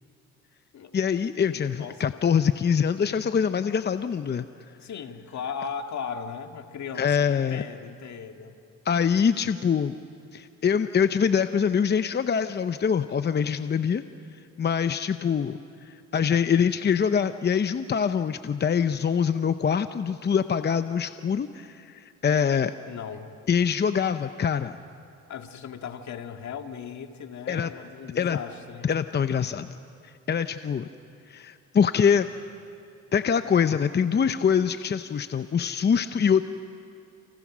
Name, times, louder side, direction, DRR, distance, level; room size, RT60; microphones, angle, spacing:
voice 1, 0.9-4.5 7.0-7.6 8.8-9.9 10.3-14.0 14.6-15.6 15.9-22.7 23.5-24.8 27.5-27.7 28.1-28.4 28.8-29.7 30.0-30.9 31.3-32.3 33.1-36.4, left 7 dB, 35° left, 10 dB, 0.7 m, -24 dB
voice 2, 1.5-2.0 4.8-8.6 22.3-22.5 22.9-23.3 25.3-28.9, left 6 dB, 65° left, 5 dB, 2.0 m, -37 dB
30.0 x 28.5 x 6.2 m, 2.5 s
cardioid pair, 90°, 30 cm